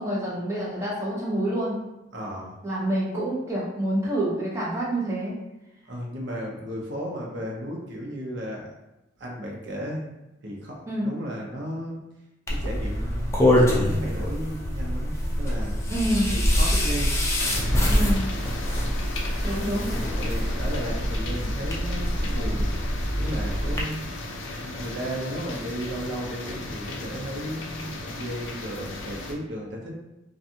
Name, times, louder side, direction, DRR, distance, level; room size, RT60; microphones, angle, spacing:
voice 1, 0.0-1.8 2.6-5.4 10.9-11.2 15.9-16.3 17.9-18.2 19.4-19.9, right 1 dB, 15° right, -7 dB, 0.8 m, -27 dB
voice 2, 2.1-2.6 5.9-8.7 9.2-10.1 10.4-12.0 12.5-15.8 16.3-17.1 18.8-18.9 19.9-22.8 23.1-24.0 24.6-29.9, equal, 65° right, -2 dB, 0.7 m, -34 dB
sound 1, 12.5-23.8, equal, 15° left, 0.4 m, -25 dB
sound 2, 17.4-29.3, left 2 dB, 80° left, 0.4 m, -36 dB
2.5 x 2.3 x 2.7 m, 0.96 s
head